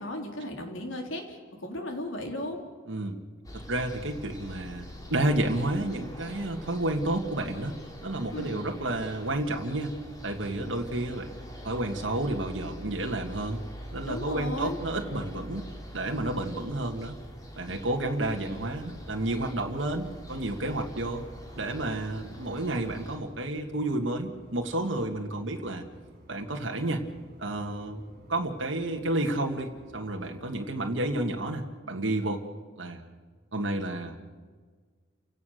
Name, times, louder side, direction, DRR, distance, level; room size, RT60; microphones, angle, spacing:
voice 1, 0.0-2.6 8.3-8.6 14.1-14.8, left 1 dB, 90° left, 3 dB, 3.7 m, -35 dB
voice 2, 2.9-3.2 3.5-7.8 8.0-10.0 10.2-11.3 11.6-13.6 13.9-15.6 15.9-17.2 17.6-21.2 21.6-25.9 26.3-27.0 27.4-28.0 28.3-32.4 32.8-33.0 33.5-34.2, right 1 dB, 75° right, 3 dB, 1.9 m, -31 dB
sound 1, 3.4-23.2, equal, 20° left, 3.1 m, -44 dB
sound 2, 22.8-31.5, equal, 50° right, 5.7 m, -54 dB
29.5 x 17.0 x 6.6 m, 1.5 s
head